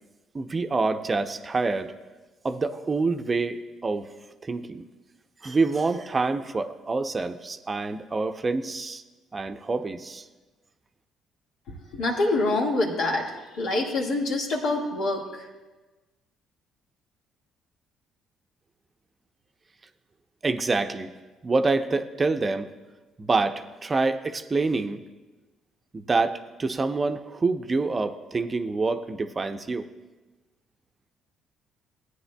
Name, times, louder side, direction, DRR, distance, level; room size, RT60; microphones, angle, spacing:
voice 1, 0.3-1.9 2.4-4.1 4.4-4.8 5.4-9.0 9.3-10.3 20.4-21.1 21.4-22.7 23.2-25.0 25.9-29.8, right 3 dB, 35° right, 8 dB, 0.6 m, -26 dB
voice 2, 11.9-15.4, left 2 dB, 70° left, -1 dB, 1.8 m, -26 dB
16.5 x 9.3 x 2.3 m, 1.2 s
hypercardioid pair, 55°, 0 cm